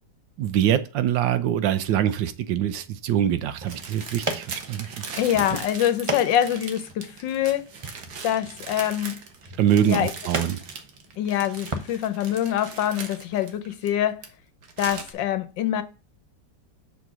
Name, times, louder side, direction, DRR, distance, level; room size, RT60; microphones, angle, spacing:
voice 1, 0.4-5.0 9.6-10.6, right 10 dB, 85° right, 1.5 m, -24 dB
sound 1, 3.4-11.9, right 2 dB, 30° right, 0.5 m, -37 dB
sound 2, 3.7-14.3 14.6-15.1, right 5 dB, 60° right, 1.6 m, -39 dB
voice 2, 5.1-7.6 8.2-9.2 9.8-10.1 11.2-14.2 14.8-15.8, left 11 dB, 85° left, 1.5 m, -25 dB
6.4 x 4.1 x 6.1 m
omnidirectional pair, 1.9 m